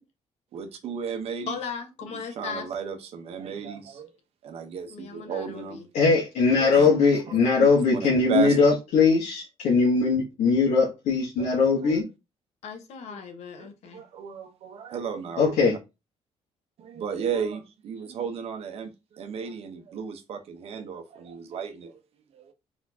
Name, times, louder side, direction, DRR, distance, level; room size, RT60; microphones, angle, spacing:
voice 1, 0.5-1.6 2.1-4.1 4.4-5.8 6.5-7.7 8.0-8.6 11.4-11.5 11.8-12.0 13.1-13.2 13.6-15.8 16.8-22.0 22.3-22.5, right 7 dB, 60° right, 1.0 m, -34 dB
voice 2, 1.5-2.7 4.9-5.9 12.6-14.0, left 6 dB, 70° left, 1.2 m, -37 dB
voice 3, 5.9-12.0 15.4-15.8, left 4 dB, 90° left, 1.3 m, -21 dB
4.2 x 3.7 x 2.8 m
cardioid pair, 145°, 12 cm